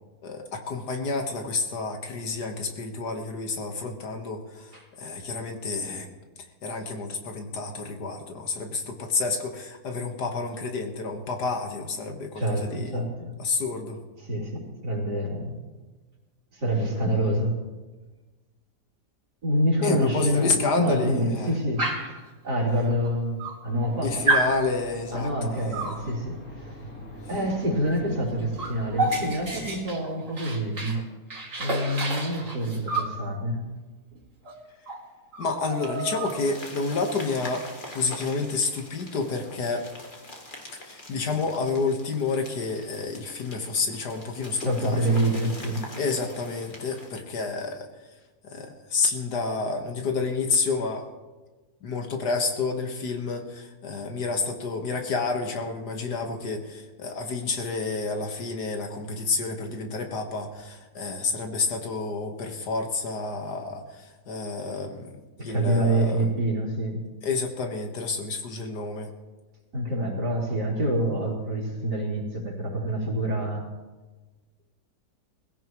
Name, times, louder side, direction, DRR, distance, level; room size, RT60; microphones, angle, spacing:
voice 1, 0.2-6.1 6.4-12.9 13.4-14.0 19.8-21.6 24.0-26.1 35.4-39.9 40.8-45.2 46.0-47.9 48.4-51.1 51.8-66.3 67.2-69.1, left 4 dB, 75° left, 4 dB, 2.0 m, -29 dB
voice 2, 12.4-13.3 14.3-15.5 16.5-17.6 19.4-22.2 22.4-24.3 25.1-26.8 27.3-31.1 31.6-33.7 34.1-34.2 44.6-45.9 65.4-67.0 69.7-73.6, right 1 dB, 75° right, -4 dB, 3.9 m, -27 dB
Dog, 21.8-22.2 23.0-23.1 23.4-23.9 24.3-24.6 25.7-26.0 27.8-28.0 28.3-31.0 31.3-33.2 34.4-34.6 34.9-35.0 35.3-36.6, right 2 dB, 50° right, 2.5 m, -29 dB
sound 1, 23.8-29.8, equal, 50° left, 2.3 m, -44 dB
sound 2, 35.7-47.2, left 2 dB, 30° left, 1.8 m, -44 dB
21.0 x 16.0 x 3.1 m, 1.2 s
omnidirectional pair, 1.8 m